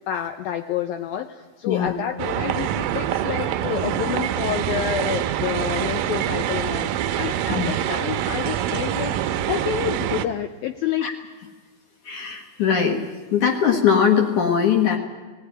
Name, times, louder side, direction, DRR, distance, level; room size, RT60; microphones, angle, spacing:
voice 1, 0.1-11.1, left 10 dB, 80° left, 7 dB, 2.2 m, -29 dB
sound 1, 2.2-10.2, right 11 dB, 75° right, 2.1 m, -25 dB
voice 2, 12.1-13.0 13.3-15.0, left 7 dB, 55° left, 3 dB, 2.6 m, -20 dB
19.0 x 17.0 x 9.9 m, 1.4 s
omnidirectional pair, 5.0 m